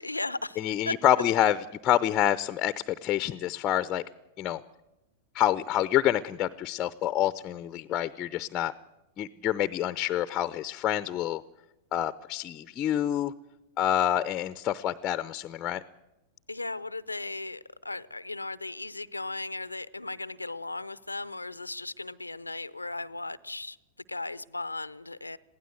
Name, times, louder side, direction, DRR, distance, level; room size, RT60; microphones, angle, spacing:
voice 1, 0.0-0.9 16.5-23.8 24.1-25.4, left 2 dB, 85° left, 0.6 m, -36 dB
voice 2, 0.6-1.6 1.8-4.0 4.4-4.6 5.3-8.7 9.2-11.4 11.9-13.3 13.8-15.8, left 11 dB, 30° left, 0.7 m, -27 dB
22.0 x 16.5 x 7.9 m
figure-of-eight pair, 95°, 0 cm